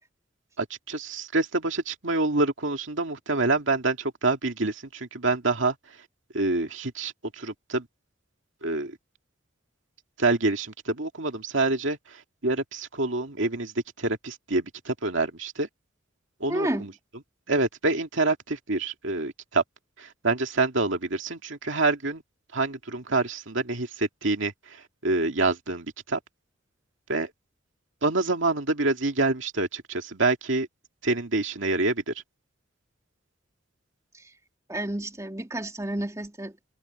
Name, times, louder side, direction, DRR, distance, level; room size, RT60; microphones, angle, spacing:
voice 1, 0.6-5.7 6.3-7.9 8.6-9.0 10.2-13.7 14.0-15.7 16.4-16.9 17.5-19.6 20.0-22.2 22.5-26.2 27.1-27.3 28.0-30.7 31.0-32.1, right 2 dB, 65° right, 2.4 m, -27 dB
voice 2, 16.5-16.9 34.7-36.5, right 1 dB, 15° right, 2.5 m, -30 dB
head